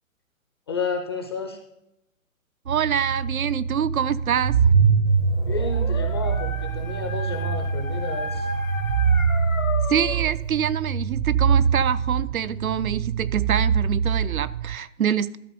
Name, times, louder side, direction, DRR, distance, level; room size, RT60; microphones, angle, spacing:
voice 1, 0.7-1.6 5.5-8.5, left 5 dB, 20° left, 0.5 m, -31 dB
sound 1, 2.7-14.8, right 6 dB, 35° right, 0.4 m, -24 dB
voice 2, 2.7-4.6 9.9-15.4, right 9 dB, 90° right, 0.6 m, -25 dB
Dog, 5.3-10.3, left 3 dB, 75° left, 1.2 m, -34 dB
12.5 x 4.2 x 6.7 m
hypercardioid pair, 145°, 41 cm